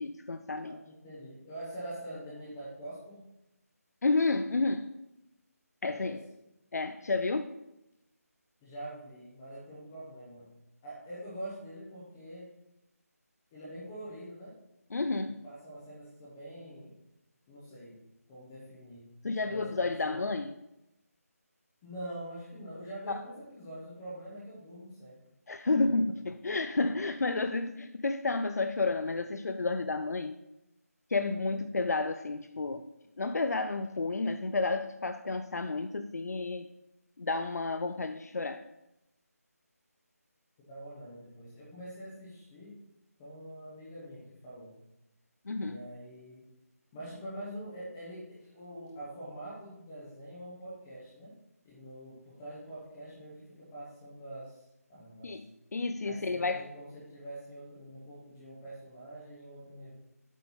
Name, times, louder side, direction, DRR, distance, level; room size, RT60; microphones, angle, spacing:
voice 1, 0.0-0.8 4.0-4.9 5.8-6.2 6.7-7.6 14.9-15.4 19.2-20.6 23.1-23.2 25.5-30.4 31.1-32.9 33.2-36.7 37.2-38.7 45.5-45.8 55.2-56.6, left 3 dB, 75° left, 9 dB, 0.5 m, -31 dB
voice 2, 0.6-3.2 5.9-6.2 8.6-12.5 13.5-14.5 15.4-16.9 17.5-18.0 18.3-19.1 19.4-20.2 21.8-25.2 31.4-31.6 40.7-42.7 43.2-44.8 45.6-46.5 46.9-51.3 51.6-55.4 56.0-59.9, right 1 dB, 5° left, -7 dB, 0.6 m, -45 dB
8.0 x 4.4 x 5.4 m, 0.91 s
figure-of-eight pair, 175°, 9 cm